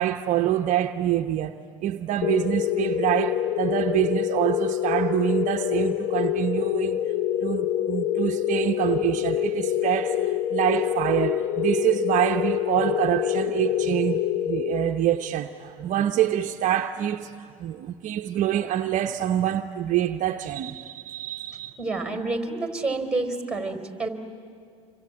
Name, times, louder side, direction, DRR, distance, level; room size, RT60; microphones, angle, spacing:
voice 1, 0.0-1.5 1.8-7.0 7.4-21.8, right 12 dB, 50° right, 0.9 m, -26 dB
sound 1, 2.2-15.4, left 11 dB, 50° left, 0.7 m, -26 dB
voice 2, 21.8-24.1, right 3 dB, 5° right, 3.9 m, -28 dB
27.5 x 24.5 x 8.8 m
hypercardioid pair, 85°, 17 cm